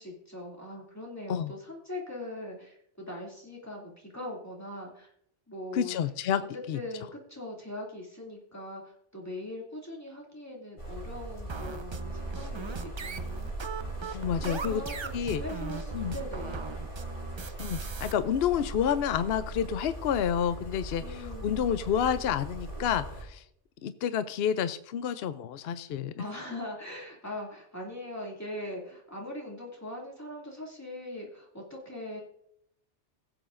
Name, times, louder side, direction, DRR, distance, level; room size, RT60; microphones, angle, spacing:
voice 1, 0.0-5.1 5.5-6.0 6.4-13.5 14.4-16.6 21.0-21.6 26.2-32.2, left 1 dB, 15° left, -2 dB, 2.4 m, -41 dB
voice 2, 5.7-6.4 6.7-6.8 14.1-14.8 15.1-15.4 15.9-16.1 17.6-23.4 23.8-26.2, left 8 dB, 65° left, 12 dB, 0.8 m, -29 dB
sound 1, 10.8-23.2, right 2 dB, 90° left, 4.2 m, -40 dB
sound 2, 11.5-18.1, right 4 dB, 35° right, 0.4 m, -39 dB
20.5 x 7.8 x 2.5 m, 0.73 s
omnidirectional pair, 1.2 m